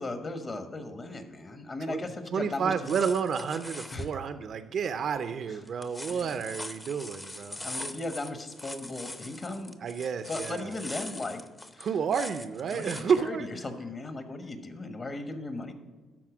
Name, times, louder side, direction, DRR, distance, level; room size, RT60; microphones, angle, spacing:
voice 1, 0.0-2.7 3.9-4.1 5.5-5.6 6.1-6.4 7.6-9.7 10.3-11.4 11.7-12.0 12.7-15.7, left 2 dB, 35° left, 7 dB, 1.3 m, -37 dB
voice 2, 2.3-7.6 9.8-10.7 11.8-13.5, right 6 dB, 60° right, 10 dB, 0.5 m, -30 dB
sound 1, 2.6-4.1 5.7-13.2 13.6-13.7, left 1 dB, 15° left, 0.7 m, -42 dB
12.0 x 4.2 x 6.1 m, 1.3 s
cardioid pair, 90°, 0 cm